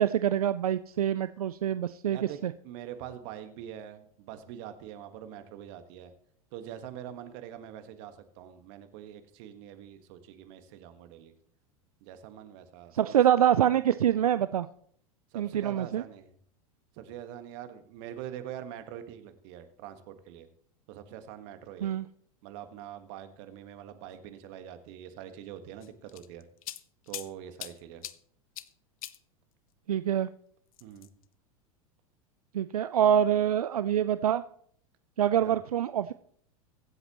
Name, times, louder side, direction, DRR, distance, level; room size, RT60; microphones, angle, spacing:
voice 1, 0.0-2.5 12.9-14.7 15.3-16.0 21.8-22.1 29.9-30.3 32.5-34.4 35.2-36.1, right 10 dB, 85° right, 14 dB, 0.4 m, -25 dB
voice 2, 2.1-2.4 2.6-6.1 6.5-11.3 12.0-13.1 15.3-16.3 16.9-20.5 20.9-21.9 22.4-26.5 27.1-28.0 30.8-31.1 35.4-35.5, right 10 dB, 55° right, 9 dB, 1.6 m, -44 dB
sound 1, 25.8-27.3 27.6-28.2 28.6-28.7 29.0-29.2 30.7-31.2, left 13 dB, 70° left, 0.7 m, -41 dB
23.0 x 8.0 x 3.0 m, 0.64 s
hypercardioid pair, 90°, 18 cm